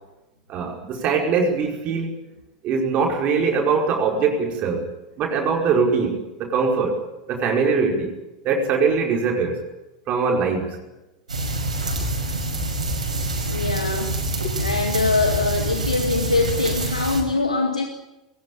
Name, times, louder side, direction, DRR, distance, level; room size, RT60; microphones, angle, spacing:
voice 1, 0.5-2.1 2.6-4.8 5.2-7.0 7.3-8.2 8.4-9.6 10.1-10.8, right 5 dB, 40° right, 1 dB, 5.1 m, -22 dB
sound 1, 11.3-17.2, right 1 dB, 80° right, 5.8 m, -26 dB
voice 2, 13.5-14.2 14.6-17.8, left 3 dB, 90° left, 3 dB, 2.0 m, -23 dB
22.0 x 19.5 x 8.7 m, 0.98 s
figure-of-eight pair, 90°, 4 cm